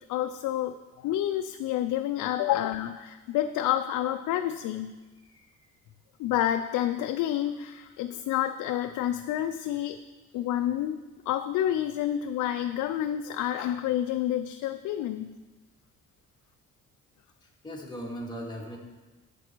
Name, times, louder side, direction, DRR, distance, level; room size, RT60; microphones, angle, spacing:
voice 1, 0.1-0.8 1.0-4.9 6.2-10.0 10.3-15.3, left 12 dB, 85° left, 8 dB, 0.5 m, -29 dB
voice 2, 5.2-5.7 17.4-18.8, equal, 15° left, -2 dB, 2.3 m, -39 dB
10.0 x 7.5 x 4.5 m, 1.2 s
cardioid pair, 90°, 30 cm